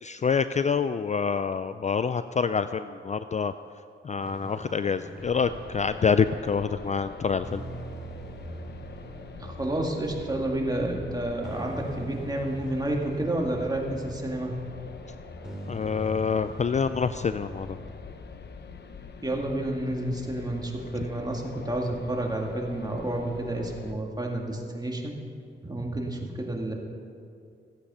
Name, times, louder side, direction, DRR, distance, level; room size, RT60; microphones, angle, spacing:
voice 1, 0.0-3.5 4.0-7.6 15.7-17.8, left 6 dB, 35° left, 12 dB, 0.4 m, -26 dB
sound 1, 4.2-18.0, right 1 dB, 5° right, 2.6 m, -43 dB
sound 2, 5.2-23.9, left 5 dB, 60° left, 0.8 m, -44 dB
voice 2, 9.4-14.5 19.2-25.1 25.6-26.7, right 1 dB, 20° right, 0 dB, 2.1 m, -30 dB
14.5 x 8.7 x 5.6 m, 2.4 s
cardioid pair, 65°, 20 cm